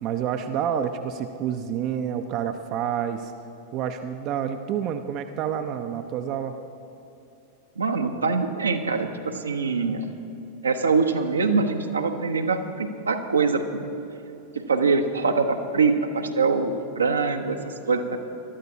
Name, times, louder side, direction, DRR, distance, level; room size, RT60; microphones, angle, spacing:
voice 1, 0.0-3.3 3.7-6.6, right 9 dB, 40° right, 7 dB, 0.6 m, -28 dB
voice 2, 7.8-10.0 10.6-13.8 14.5-18.2, right 4 dB, 75° right, 5 dB, 0.9 m, -24 dB
22.0 x 12.5 x 2.8 m, 2.9 s
figure-of-eight pair, 90°, 0 cm